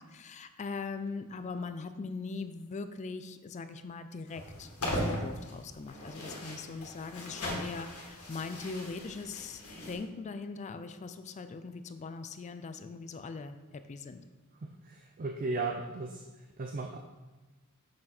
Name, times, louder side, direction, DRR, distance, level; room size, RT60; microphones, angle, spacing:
voice 1, 0.0-14.2, left 4 dB, 30° left, 10 dB, 0.4 m, -41 dB
sound 1, 4.3-10.0, equal, 85° left, 2.0 m, -39 dB
voice 2, 14.6-16.2 16.6-17.0, right 3 dB, 40° right, 4 dB, 0.5 m, -36 dB
6.5 x 6.3 x 4.3 m, 1.2 s
head